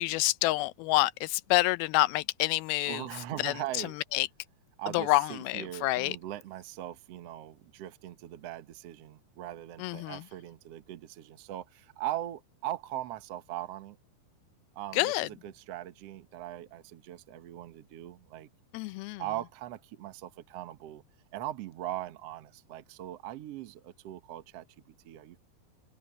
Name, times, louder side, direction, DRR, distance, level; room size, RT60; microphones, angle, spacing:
voice 1, 0.0-3.1 3.4-3.5 4.1-4.3 4.9-6.2 9.8-10.2 14.9-15.3 18.7-19.2, left 19 dB, 80° left, 2.4 m, -27 dB
voice 2, 2.8-3.9 4.8-14.0 14.7-18.5 19.2-21.0 21.3-25.4, right 13 dB, 70° right, 1.5 m, -40 dB
omnidirectional pair, 4.5 m